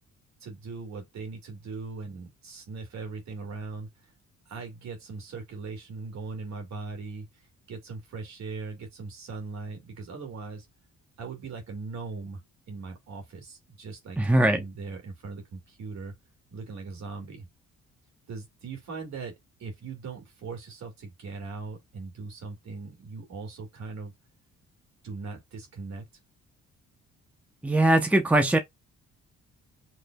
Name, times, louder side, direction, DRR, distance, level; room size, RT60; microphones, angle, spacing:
voice 1, 0.4-3.9 4.5-7.3 7.7-10.7 11.2-12.4 12.7-14.2 14.5-16.1 16.5-17.5 18.3-19.3 19.6-24.1 25.0-26.0, right 4 dB, 65° right, 2.2 m, -39 dB
voice 2, 14.2-14.6 27.6-28.6, right 1 dB, 5° right, 0.7 m, -21 dB
4.9 x 3.3 x 2.3 m
cardioid pair, 90°, 30 cm